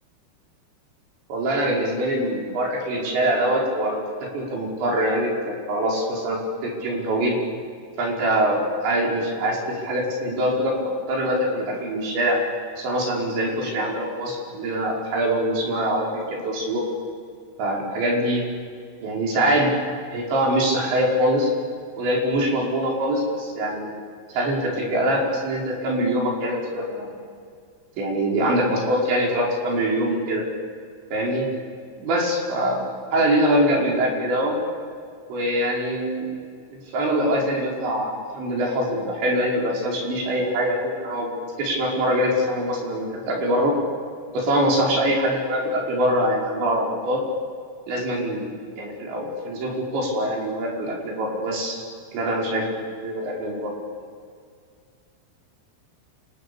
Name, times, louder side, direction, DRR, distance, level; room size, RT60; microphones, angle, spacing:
voice 1, 1.3-4.0 4.3-7.4 8.0-10.7 11.1-12.4 12.8-16.8 17.6-18.5 19.0-19.7 20.1-21.5 22.0-23.9 24.3-27.1 28.0-30.4 31.1-31.5 32.0-32.8 33.1-34.6 35.3-36.3 36.7-41.3 41.6-43.7 44.3-47.2 47.9-48.5 48.8-51.8 52.1-52.7 53.0-53.7, right 1 dB, 80° right, -1 dB, 7.4 m, -23 dB
29.0 x 27.5 x 7.0 m, 2.2 s
omnidirectional pair, 5.1 m